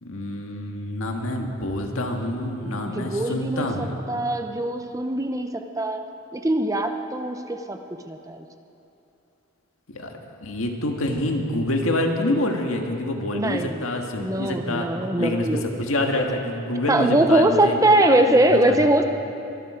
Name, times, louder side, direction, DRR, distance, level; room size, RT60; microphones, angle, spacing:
voice 1, 0.0-4.0 9.9-14.9 15.2-17.8 18.3-18.9, left 1 dB, 75° left, 2 dB, 1.7 m, -27 dB
voice 2, 2.6-3.7 4.1-6.0 6.3-7.8 8.1-8.4 13.3-13.9 14.2-15.7 16.9-19.0, right 1 dB, 15° right, 6 dB, 0.6 m, -21 dB
23.5 x 12.5 x 5.0 m, 2.8 s
head